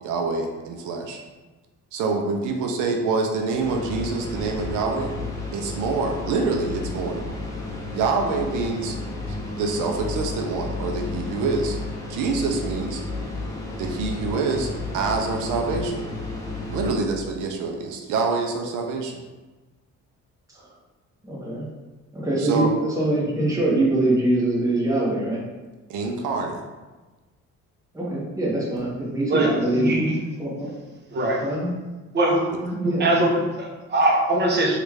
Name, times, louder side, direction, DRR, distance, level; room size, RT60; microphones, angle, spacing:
voice 1, 0.0-1.2 1.9-5.1 5.5-7.3 7.9-9.0 9.5-11.8 12.1-13.0 13.8-16.0 16.7-19.2 22.4-22.7 25.9-26.6 32.5-32.6, right 4 dB, 85° right, 2 dB, 0.5 m, -26 dB
sound 1, 3.6-16.9, left 2 dB, 10° left, 0.7 m, -32 dB
voice 2, 21.2-21.7 22.1-25.4 27.9-30.0 30.4-30.7 31.3-31.7 32.8-33.3, right 1 dB, 10° right, -6 dB, 1.0 m, -23 dB
voice 3, 29.7-30.1 31.1-31.4 32.1-34.8, right 1 dB, 35° right, 0 dB, 0.7 m, -22 dB
3.1 x 2.4 x 3.2 m, 1.2 s
cardioid pair, 90°, 30 cm